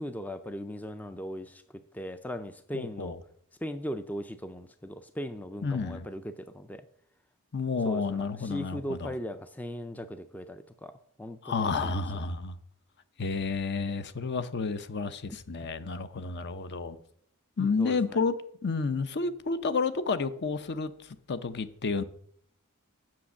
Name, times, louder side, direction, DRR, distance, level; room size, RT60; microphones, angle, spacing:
voice 1, 0.0-1.6 1.9-3.1 3.6-6.8 7.8-10.9 11.2-12.0 15.6-15.7 17.6-18.2, equal, 5° left, 0.4 m, -38 dB
voice 2, 2.7-3.2 5.6-6.1 7.5-9.1 11.4-12.5 13.2-17.0 17.6-18.3 18.6-20.9 21.3-22.0, left 4 dB, 50° left, 0.6 m, -30 dB
7.6 x 6.3 x 7.0 m
head